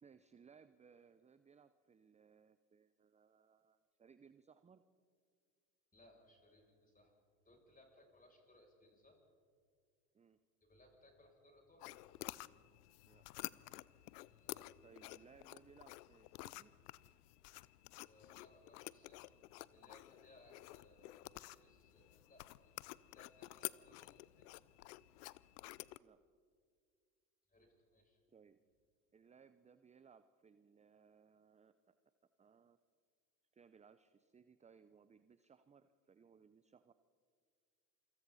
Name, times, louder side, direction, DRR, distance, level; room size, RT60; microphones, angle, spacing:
voice 1, 0.0-4.8 10.1-10.4 13.0-13.2 14.8-16.7 26.0-26.2 28.3-28.6 29.1-31.9 32.4-32.8 33.5-36.9, right 6 dB, 15° right, 12 dB, 0.6 m, -65 dB
voice 2, 5.9-7.1 7.4-9.2 10.6-11.9 14.2-14.6 18.0-19.3 19.7-24.6 27.5-28.2, left 1 dB, 15° left, 0 dB, 7.5 m, -66 dB
sound 1, 11.8-26.0, left 19 dB, 70° left, 0.7 m, -51 dB
27.5 x 26.0 x 4.2 m, 2.2 s
hypercardioid pair, 80°, 48 cm